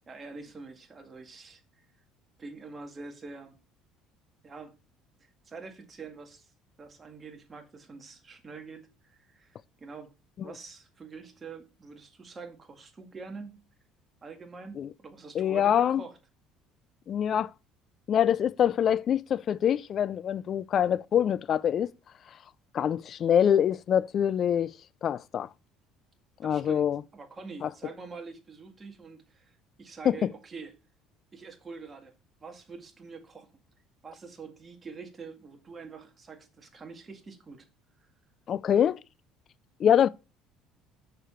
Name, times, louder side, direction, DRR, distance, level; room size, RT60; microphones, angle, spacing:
voice 1, 0.1-1.6 2.4-3.6 4.4-4.8 5.2-6.5 6.8-10.1 10.4-13.6 14.2-16.2 26.4-30.8 31.3-32.1 32.4-33.6 34.0-37.7, right 4 dB, 30° right, 1.9 m, -45 dB
voice 2, 15.3-16.0 17.1-17.5 18.1-21.9 22.7-24.7 25.0-25.5 26.4-27.0 27.6-27.7 30.1-30.2 38.5-39.0 39.8-40.1, left 9 dB, 45° left, 0.3 m, -25 dB
6.7 x 6.5 x 4.4 m
supercardioid pair, 95°, 0 cm